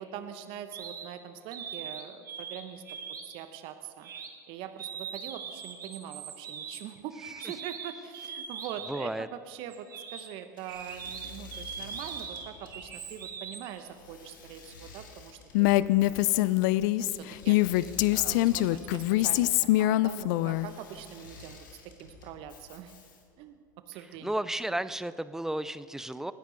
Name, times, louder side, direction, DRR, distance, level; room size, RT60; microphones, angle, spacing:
voice 1, 0.0-2.8 3.2-4.1 4.5-16.3 17.0-21.6 22.0-22.9 23.4-23.6 23.9-24.3, right 9 dB, 55° right, 9 dB, 1.0 m, -43 dB
sound 1, 0.7-1.1 1.5-2.6 2.9-3.4 4.0-4.3 4.8-9.1 9.7-13.7, right 6 dB, 85° right, 1.7 m, -41 dB
voice 2, 8.9-9.3 24.2-26.3, right 1 dB, 5° right, 15 dB, 0.5 m, -33 dB
Engine / Mechanisms, 10.5-23.4, left 5 dB, 80° left, 2.3 m, -51 dB
Female speech woman speaking, 15.5-20.7, left 17 dB, 65° left, 0.4 m, -24 dB
27.5 x 10.5 x 4.0 m, 2.3 s
hypercardioid pair, 90°, 11 cm